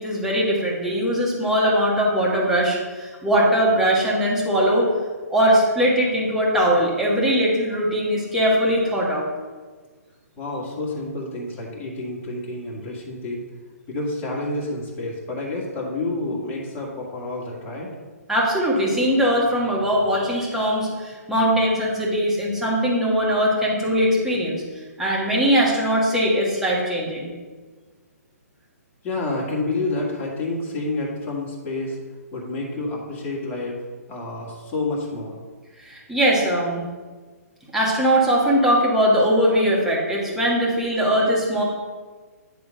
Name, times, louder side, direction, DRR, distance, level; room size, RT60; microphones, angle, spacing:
voice 1, 0.0-4.9 5.3-9.3 18.3-24.6 25.0-27.3 35.8-36.8 37.7-41.6, equal, 5° right, -5 dB, 1.6 m, -20 dB
voice 2, 10.4-13.4 13.9-17.9 29.0-32.0 32.3-33.8 34.1-35.4, left 2 dB, 20° left, -2 dB, 1.8 m, -29 dB
9.7 x 3.6 x 5.0 m, 1.4 s
hypercardioid pair, 140°, 9 cm